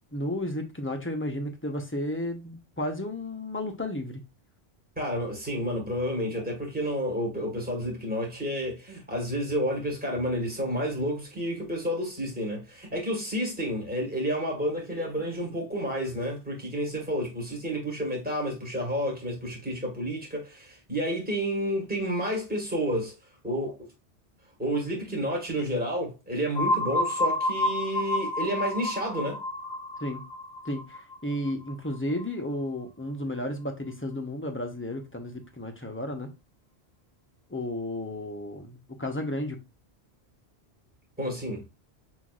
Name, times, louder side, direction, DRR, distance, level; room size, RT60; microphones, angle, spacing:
voice 1, 0.1-4.2 30.0-30.2 30.6-36.3 37.5-39.6, left 1 dB, 15° left, 0.7 m, -33 dB
voice 2, 5.0-23.1 23.4-23.9 24.6-29.4 41.2-41.6, equal, 10° right, 1.6 m, -30 dB
sound 1, 26.5-32.2, left 1 dB, 45° left, 0.7 m, -30 dB
5.8 x 3.1 x 2.4 m
omnidirectional pair, 1.2 m